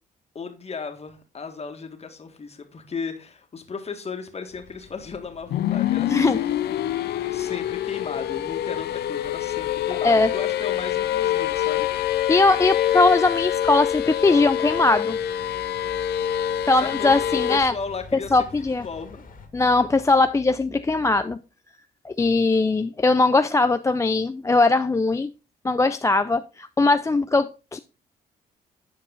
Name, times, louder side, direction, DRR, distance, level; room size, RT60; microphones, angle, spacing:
voice 1, 0.3-11.9 16.8-18.5 18.8-19.2, left 5 dB, 35° left, 1.8 m, -36 dB
sound 1, 4.5-19.5, left 3 dB, 50° left, 2.0 m, -47 dB
sound 2, 5.5-17.6, left 11 dB, 70° left, 0.5 m, -25 dB
voice 2, 6.1-6.4 10.0-10.3 12.3-15.2 16.7-17.7 18.3-18.9 19.5-21.4 22.0-25.3 25.6-27.8, left 3 dB, 15° left, 0.4 m, -20 dB
9.6 x 4.7 x 3.8 m
supercardioid pair, 70°, 18 cm